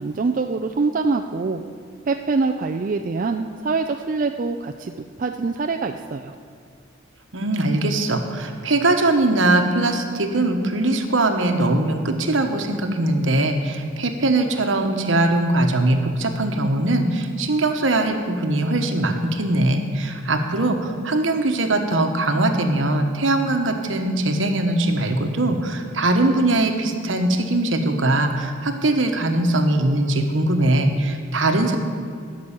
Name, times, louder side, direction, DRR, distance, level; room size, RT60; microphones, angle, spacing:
voice 1, 0.0-1.6 2.1-6.3, right 4 dB, 40° right, 5 dB, 0.4 m, -24 dB
voice 2, 7.3-31.8, right 2 dB, 75° right, 5 dB, 1.2 m, -21 dB
12.5 x 6.2 x 8.8 m, 2.2 s
head